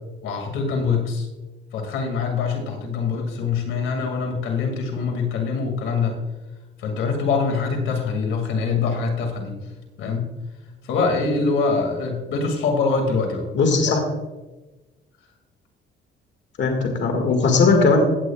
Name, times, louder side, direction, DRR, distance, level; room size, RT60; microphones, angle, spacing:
voice 1, 0.2-1.3 1.7-6.1 6.8-9.6 10.0-10.3 10.8-13.5 13.9-14.0, left 4 dB, 85° left, 2 dB, 2.2 m, -24 dB
voice 2, 13.6-14.0 16.6-18.0, left 4 dB, 65° left, 3 dB, 1.8 m, -18 dB
16.5 x 8.5 x 2.3 m, 1.1 s
cardioid pair, 90°, 20 cm